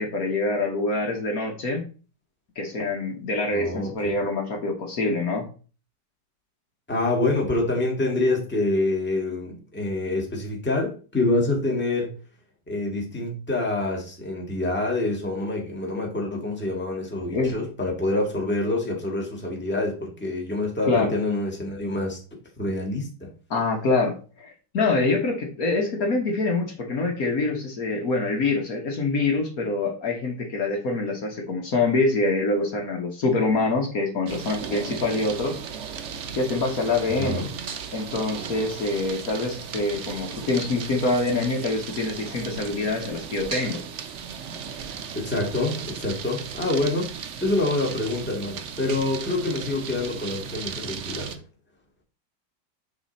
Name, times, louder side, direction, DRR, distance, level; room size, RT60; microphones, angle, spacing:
voice 1, 0.0-1.9 2.6-5.5 17.3-17.6 20.9-21.1 23.5-35.6 36.3-37.4 37.9-43.8, left 3 dB, 60° left, 2 dB, 1.6 m, -25 dB
voice 2, 3.5-4.2 6.9-12.1 12.7-22.2 22.6-23.3 37.2-37.5 45.1-47.1 47.4-51.3, left 2 dB, 5° left, -1 dB, 1.6 m, -26 dB
sound 1, 34.3-51.4, right 7 dB, 55° right, 0.9 m, -36 dB
9.6 x 3.4 x 4.1 m, 0.36 s
omnidirectional pair, 1.8 m